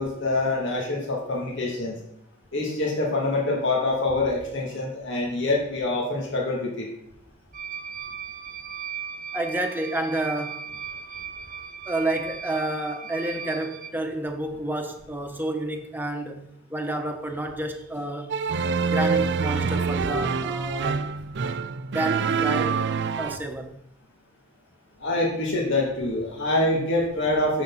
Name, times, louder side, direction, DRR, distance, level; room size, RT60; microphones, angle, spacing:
voice 1, 0.0-2.0 2.5-6.9 25.0-27.6, left 2 dB, 65° left, 2.7 m, -25 dB
sound 1, 7.5-13.9, right 7 dB, 45° right, 1.1 m, -37 dB
voice 2, 9.3-10.7 11.9-18.3 18.8-21.0 21.9-22.8 23.2-23.7, right 1 dB, 10° right, 1.2 m, -30 dB
sound 2, 18.3-23.4, right 5 dB, 60° right, 0.5 m, -26 dB
13.5 x 7.2 x 4.2 m
head